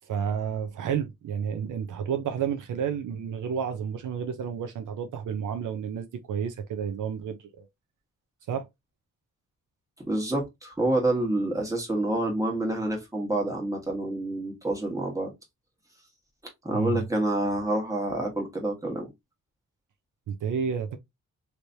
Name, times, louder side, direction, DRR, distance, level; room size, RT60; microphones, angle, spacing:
voice 1, 0.1-7.7 8.5-8.7 16.7-17.0 20.3-21.0, right 7 dB, 75° right, 0.7 m, -31 dB
voice 2, 10.1-15.3 16.6-19.1, right 1 dB, 10° right, 1.4 m, -28 dB
3.2 x 3.0 x 2.6 m
wide cardioid pair, 135°, 31 cm